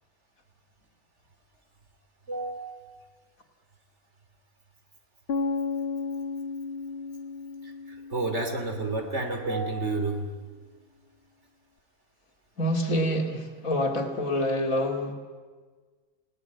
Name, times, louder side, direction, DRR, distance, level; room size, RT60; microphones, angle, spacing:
voice 1, 2.3-2.7 7.6-10.3, right 3 dB, 50° right, 5 dB, 3.2 m, -30 dB
sound 1, 5.3-9.2, left 4 dB, 45° left, 1.4 m, -33 dB
voice 2, 12.6-15.1, equal, 65° left, 3 dB, 2.9 m, -27 dB
29.5 x 18.0 x 9.0 m, 1.5 s
omnidirectional pair, 1.6 m